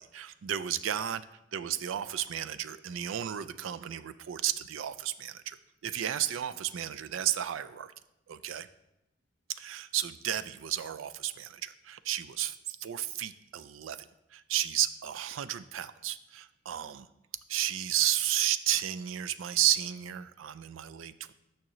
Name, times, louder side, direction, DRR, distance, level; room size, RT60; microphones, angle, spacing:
voice 1, 0.0-1.2 1.5-5.6 5.8-7.9 8.3-8.7 9.5-14.0 14.3-17.1 17.5-21.3, right 11 dB, 85° right, 14 dB, 0.4 m, -32 dB
8.7 x 5.8 x 3.0 m, 0.88 s
head